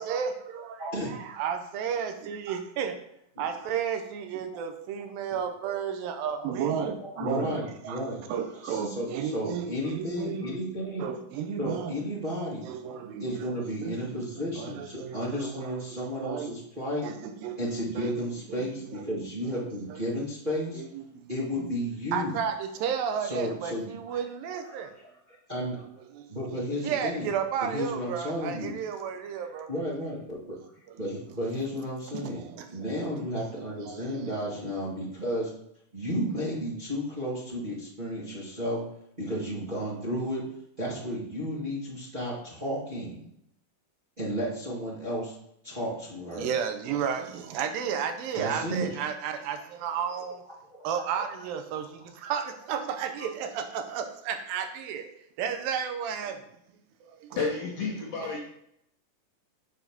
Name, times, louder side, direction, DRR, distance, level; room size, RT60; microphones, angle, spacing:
voice 1, 0.0-3.0 3.4-7.5 7.8-8.0 8.3-10.5 11.0-12.1 12.6-16.5 17.0-18.1 18.5-18.6 18.9-19.0 19.5-19.6 19.9-20.1 20.7-21.3 21.6-21.7 22.1-24.9 26.1-29.7 30.9-31.0 32.1-32.9 33.5-34.4 46.3-50.4 50.8-55.1 55.4-56.4 57.1-57.4 58.2-58.4, right 7 dB, 90° right, 7 dB, 2.6 m, -33 dB
voice 2, 7.1-8.2 8.6-11.0 11.6-12.7 13.2-17.1 17.6-20.8 21.3-22.4 23.2-24.2 24.6-24.8 25.5-25.8 26.3-27.3 27.6-28.7 29.5-30.6 31.0-32.4 32.7-35.5 35.9-38.8 39.2-40.4 40.8-43.2 44.2-45.3 45.6-46.5 48.3-49.0 51.1-51.2 53.2-53.3, equal, 30° right, -8 dB, 0.9 m, -33 dB
voice 3, 57.3-58.4, left 4 dB, 75° left, -1 dB, 1.4 m, -31 dB
7.1 x 4.0 x 5.9 m, 0.76 s
omnidirectional pair, 4.0 m